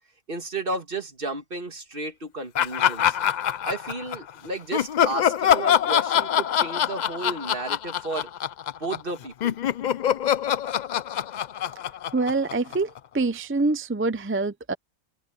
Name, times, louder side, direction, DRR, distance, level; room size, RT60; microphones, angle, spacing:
voice 1, 0.3-3.2 3.6-8.3 8.8-9.6, right 3 dB, 40° right, 2.3 m, -33 dB
Laughter, 2.5-4.3 4.7-9.1 9.4-13.0, left 9 dB, 75° left, 0.4 m, -24 dB
voice 2, 12.1-12.9 13.1-14.7, right 3 dB, 20° right, 0.3 m, -25 dB
open air
omnidirectional pair, 1.4 m